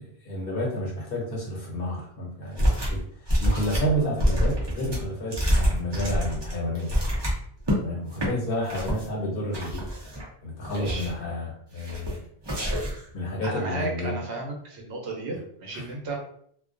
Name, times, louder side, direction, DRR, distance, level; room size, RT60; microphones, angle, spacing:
voice 1, 0.0-3.0 3.4-7.0 7.8-9.9 10.4-12.2 13.1-14.2 15.7-15.9, equal, 60° left, -3 dB, 0.9 m, -30 dB
sound 1, 2.6-3.0 3.3-7.8 8.1-8.3 8.7-9.1 9.5-10.3 10.6-11.2 11.8-12.2 12.4-13.1, equal, 30° right, 0.6 m, -26 dB
voice 2, 10.7-11.1 13.4-16.2, right 2 dB, 80° right, 0 dB, 1.0 m, -34 dB
2.2 x 2.2 x 2.5 m, 0.63 s
omnidirectional pair, 1.1 m